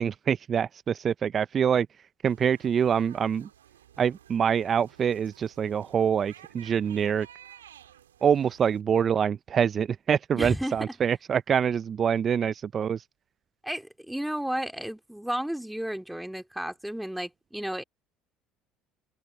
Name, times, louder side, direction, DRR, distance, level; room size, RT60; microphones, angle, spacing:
voice 1, 0.0-1.9 2.2-3.5 4.0-7.3 8.2-13.0, right 7 dB, 40° right, 0.4 m, -25 dB
sound 1, 2.3-8.8, right 10 dB, 90° right, 1.6 m, -53 dB
voice 2, 10.3-10.9 13.6-17.8, right 1 dB, 5° right, 3.0 m, -33 dB
open air
hypercardioid pair, 65°, 0 cm